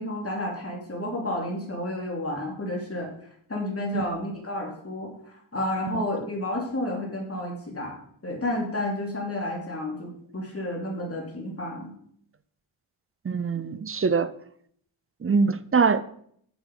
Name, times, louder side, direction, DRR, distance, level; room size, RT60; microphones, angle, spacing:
voice 1, 0.0-3.1 3.5-8.0 8.2-11.9, left 1 dB, 30° left, -1 dB, 2.9 m, -31 dB
voice 2, 13.2-14.3 15.2-16.0, right 5 dB, 30° right, 15 dB, 0.5 m, -23 dB
8.9 x 6.8 x 5.3 m, 0.66 s
wide cardioid pair, 95°, 50 cm